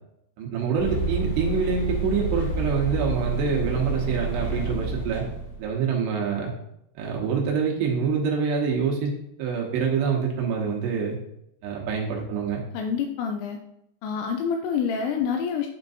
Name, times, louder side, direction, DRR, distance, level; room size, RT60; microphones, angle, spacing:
voice 1, 0.4-5.2 5.6-6.5 7.0-9.1 9.4-11.2 11.6-12.6, right 5 dB, 75° right, -2 dB, 3.0 m, -26 dB
sound 1, 0.8-5.6, right 3 dB, 65° left, 1.0 m, -29 dB
voice 2, 12.7-13.6 14.0-15.7, left 6 dB, 85° left, 4 dB, 2.7 m, -27 dB
10.5 x 4.4 x 2.6 m, 0.78 s
omnidirectional pair, 5.3 m